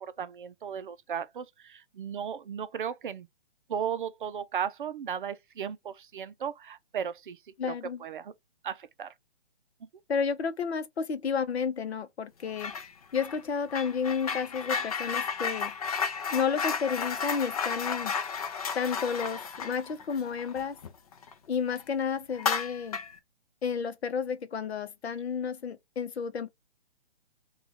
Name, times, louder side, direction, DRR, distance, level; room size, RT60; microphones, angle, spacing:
voice 1, 0.0-3.3 3.7-7.4 7.7-7.8 8.0-8.3 8.6-9.1, right 8 dB, 50° right, 0.5 m, -35 dB
voice 2, 7.6-8.0 10.1-12.7 13.1-15.7 16.3-18.1 18.7-20.8 21.5-23.0 23.6-26.5, left 6 dB, 70° left, 0.7 m, -31 dB
sound 1, 12.6-12.9 13.1-21.3 21.7-21.8 22.3-23.2, left 6 dB, 35° left, 0.5 m, -33 dB
3.3 x 2.4 x 3.9 m
figure-of-eight pair, 140°, 33 cm